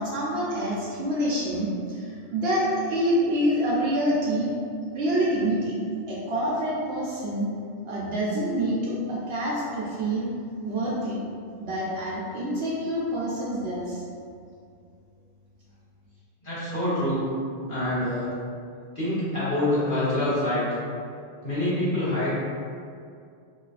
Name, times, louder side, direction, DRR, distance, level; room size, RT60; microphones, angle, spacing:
voice 1, 0.0-4.5 4.9-5.8 6.1-7.5 7.8-10.3 10.6-11.2 11.6-14.0, equal, 65° right, -6 dB, 0.7 m, -27 dB
voice 2, 16.4-17.2 17.7-18.3 18.9-20.8 21.4-22.3, left 1 dB, 45° left, -12 dB, 1.4 m, -26 dB
3.1 x 2.8 x 2.4 m, 2.3 s
omnidirectional pair, 1.2 m